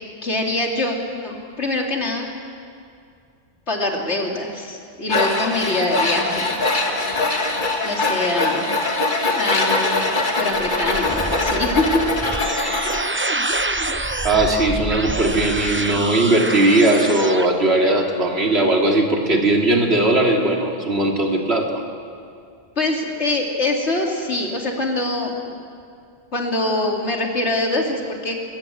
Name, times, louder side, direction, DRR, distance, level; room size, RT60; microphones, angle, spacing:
voice 1, 0.2-1.0 1.2-2.4 3.7-6.5 7.8-8.7 9.3-10.1 10.4-12.0 22.8-25.6 26.3-28.4, left 2 dB, 90° left, 0 dB, 3.2 m, -24 dB
Tools, 5.1-13.0, left 2 dB, 45° left, 2.2 m, -22 dB
sound 1, 10.0-17.5, right 2 dB, 15° right, 0.6 m, -27 dB
voice 2, 14.2-21.8, right 2 dB, 70° right, 1 dB, 3.0 m, -18 dB
22.5 x 21.0 x 7.9 m, 2.4 s
omnidirectional pair, 1.1 m